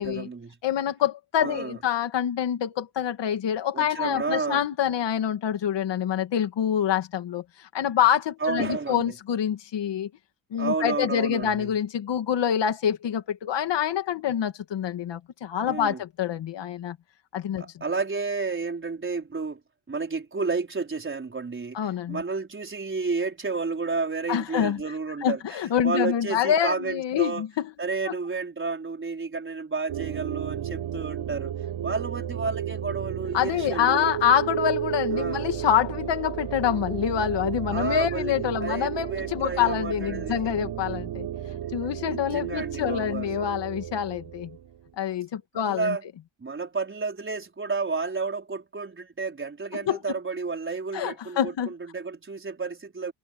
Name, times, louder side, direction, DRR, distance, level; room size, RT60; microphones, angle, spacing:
voice 1, 0.0-0.6 1.4-1.8 3.7-4.6 8.4-9.1 10.6-11.7 15.6-16.0 17.6-19.6 19.9-21.8 22.1-25.4 25.8-27.5 27.8-31.5 31.8-34.1 35.1-35.4 37.7-38.3 38.6-40.5 42.1-43.5 45.5-46.0 46.4-53.1, right 4 dB, 25° right, 4.8 m, -31 dB
voice 2, 0.6-10.1 10.5-17.0 17.3-17.8 21.7-22.2 24.3-24.8 25.2-27.7 28.1-28.2 33.3-44.5 45.0-46.0 49.9-50.2 50.9-51.7, left 9 dB, 65° left, 2.3 m, -26 dB
sound 1, 29.9-44.9, right 10 dB, 75° right, 5.8 m, -33 dB
cardioid pair, 125°, 46 cm